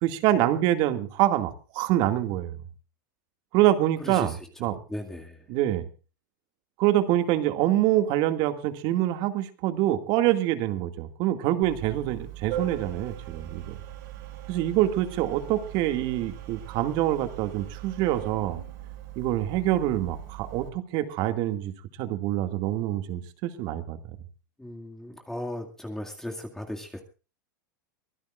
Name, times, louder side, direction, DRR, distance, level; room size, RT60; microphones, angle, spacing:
voice 1, 0.0-2.6 3.5-4.3 4.6-4.8 5.5-5.9 6.8-13.8 14.5-18.6 19.2-21.7 22.0-24.0, right 13 dB, 50° right, 8 dB, 2.2 m, -25 dB
voice 2, 4.0-4.4 4.6-5.4 24.6-27.0, left 1 dB, 5° left, 2 dB, 2.2 m, -37 dB
Organ, 11.6-20.7, right 11 dB, 65° right, 6.4 m, -40 dB
24.5 x 16.0 x 2.5 m, 0.34 s
supercardioid pair, 130°, 10 cm